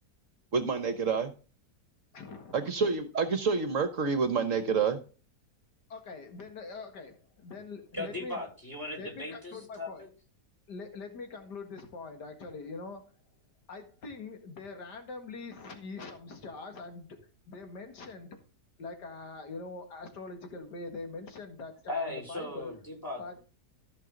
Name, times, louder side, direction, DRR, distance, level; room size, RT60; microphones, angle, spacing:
voice 1, 0.5-1.3 2.5-5.0, right 5 dB, 55° right, 10 dB, 1.3 m, -28 dB
voice 2, 2.1-2.6 5.9-8.4 9.0-10.0 10.7-13.0 13.7-17.2 17.5-18.4 18.8-22.7 23.2-23.4, left 3 dB, 90° left, 6 dB, 2.4 m, -43 dB
voice 3, 7.9-10.1 21.9-23.4, left 2 dB, 10° left, 0 dB, 4.2 m, -38 dB
14.5 x 5.8 x 3.8 m, 0.36 s
omnidirectional pair, 1.7 m